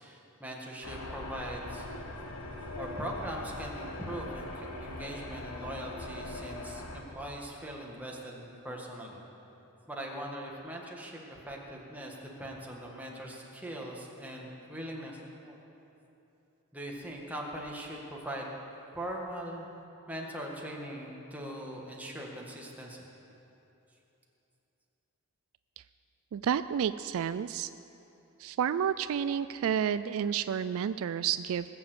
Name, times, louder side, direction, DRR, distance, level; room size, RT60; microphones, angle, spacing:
voice 1, 0.0-1.9 2.7-9.2 9.9-15.6 16.7-18.5 18.9-19.7 20.1-23.1, right 1 dB, 5° right, -2 dB, 1.8 m, -41 dB
sound 1, 0.8-7.0, left 2 dB, 85° left, 1.4 m, -41 dB
voice 2, 26.3-27.7 28.4-31.7, right 8 dB, 65° right, 13 dB, 0.3 m, -30 dB
20.0 x 7.0 x 8.1 m, 2.9 s
head